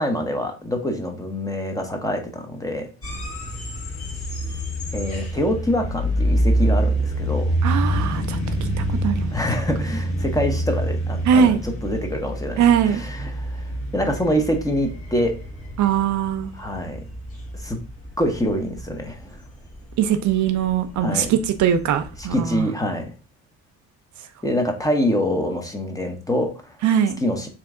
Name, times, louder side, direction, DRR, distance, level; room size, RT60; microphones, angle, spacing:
voice 1, 0.0-2.9 4.9-7.5 9.3-15.4 16.5-17.0 17.6-17.8 18.2-19.4 21.0-21.3 22.2-23.1 24.4-26.7 27.2-27.5, equal, 10° left, 0.9 m, -25 dB
sound 1, 3.0-22.6, right 1 dB, 50° left, 1.5 m, -27 dB
voice 2, 7.6-8.4 9.0-9.3 11.3-11.6 12.6-13.0 15.8-16.5 20.0-22.7 26.8-27.1, right 8 dB, 70° right, 0.6 m, -20 dB
3.4 x 3.0 x 3.6 m
cardioid pair, 90°, 30 cm